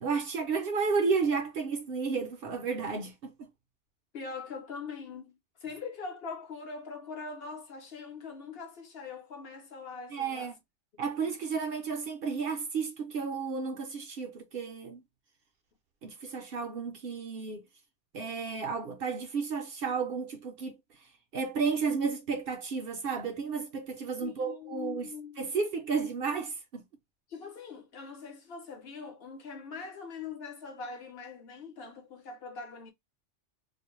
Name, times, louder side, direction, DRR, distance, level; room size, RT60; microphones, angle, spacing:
voice 1, 0.0-3.5 10.1-10.6 11.0-15.0 16.0-17.6 18.1-20.8 21.3-25.1 25.4-26.8, right 5 dB, 60° right, 0.7 m, -32 dB
voice 2, 4.1-10.5 10.9-11.3 24.2-25.4 27.3-32.9, left 5 dB, 60° left, 0.9 m, -42 dB
2.5 x 2.1 x 2.9 m
omnidirectional pair, 1.2 m